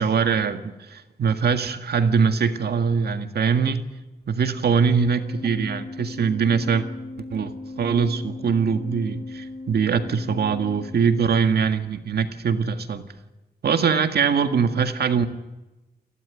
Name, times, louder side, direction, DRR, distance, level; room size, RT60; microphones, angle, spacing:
voice 1, 0.0-3.8 4.3-6.9 7.3-13.0 13.6-15.3, right 6 dB, 75° right, 8 dB, 1.8 m, -22 dB
Organ, 5.1-11.6, left 2 dB, 40° left, 3.9 m, -38 dB
29.0 x 12.5 x 9.5 m, 1.0 s
wide cardioid pair, 180°, 17 cm